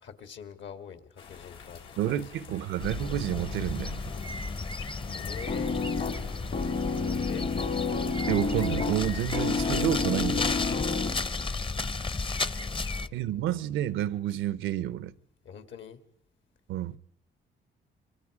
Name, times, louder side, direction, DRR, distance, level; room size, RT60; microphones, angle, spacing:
voice 1, 0.0-2.4 5.1-5.9 7.0-7.5 12.6-13.5 15.4-16.0, left 7 dB, 70° left, 2.3 m, -44 dB
sound 1, 1.2-11.3, left 6 dB, 90° left, 4.3 m, -45 dB
voice 2, 2.0-4.0 8.3-10.5 13.1-15.1 16.7-17.0, right 12 dB, 90° right, 0.8 m, -29 dB
sound 2, 2.8-13.1, left 3 dB, 25° left, 0.8 m, -33 dB
sound 3, 5.5-11.4, left 4 dB, 40° left, 1.3 m, -30 dB
26.0 x 24.0 x 5.0 m
cardioid pair, 90°, 20 cm